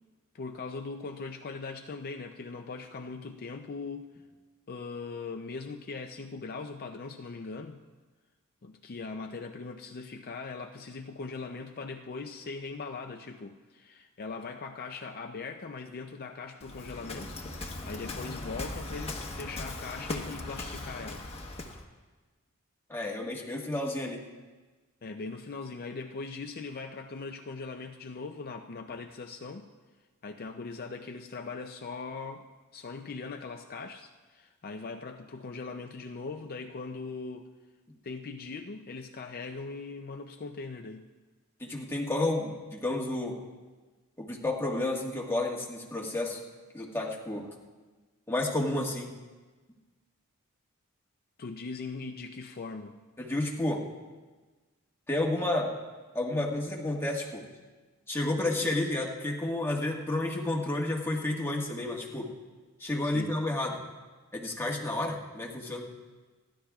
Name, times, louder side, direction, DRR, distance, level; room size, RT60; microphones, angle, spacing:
voice 1, 0.3-4.1 4.7-7.8 8.6-21.3 25.0-29.7 30.2-32.5 32.7-37.5 38.0-41.0 51.4-53.0 63.0-63.3, left 4 dB, 45° left, 4 dB, 0.5 m, -40 dB
Waves surf, 16.6-21.8, left 2 dB, 30° left, 1.2 m, -38 dB
voice 2, 22.9-24.3 41.6-43.4 44.2-46.4 46.7-47.5 48.3-49.1 53.2-53.8 55.1-55.7 56.1-57.4 58.1-62.3 62.8-63.8 64.3-65.9, left 2 dB, 10° left, -2 dB, 1.5 m, -31 dB
28.5 x 11.5 x 2.4 m, 1.3 s
head